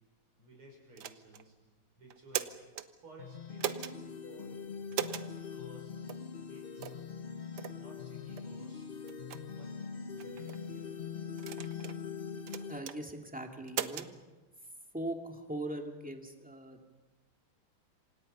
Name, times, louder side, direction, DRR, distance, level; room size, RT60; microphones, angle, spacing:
voice 1, 0.4-1.6 2.0-2.6 3.0-4.0 4.3-4.6 4.9-5.9 6.4-6.9 7.7-8.9 9.5-9.8 10.1-11.0, right 1 dB, 85° right, 0 dB, 6.9 m, -56 dB
sound 1, 1.0-1.4 2.1-2.9 3.6-3.9 4.9-5.3 6.1-6.2 6.8-7.0 7.6-7.8 8.4-8.5 9.1-9.4 10.2-10.6 11.4-12.0 12.5-13.0 13.7-14.1, right 9 dB, 60° right, 1.4 m, -38 dB
sound 2, 3.2-12.8, left 6 dB, 45° left, 0.7 m, -42 dB
voice 2, 12.7-14.1 14.9-16.9, right 1 dB, 5° right, 3 dB, 2.2 m, -40 dB
27.0 x 26.5 x 5.6 m, 1.2 s
omnidirectional pair, 2.4 m